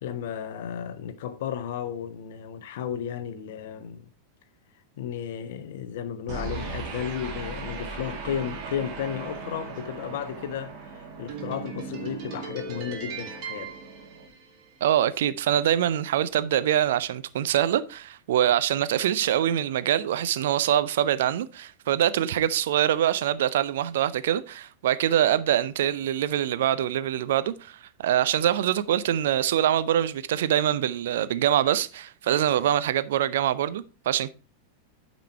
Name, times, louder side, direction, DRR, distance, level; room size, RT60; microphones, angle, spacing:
voice 1, 0.0-4.0 5.0-13.8, left 9 dB, 55° left, 0.9 m, -33 dB
sound 1, 6.3-14.8, right 4 dB, 40° right, 2.1 m, -37 dB
voice 2, 14.8-34.3, right 11 dB, 55° right, 0.5 m, -24 dB
9.2 x 5.1 x 4.5 m
figure-of-eight pair, 90°, 0 cm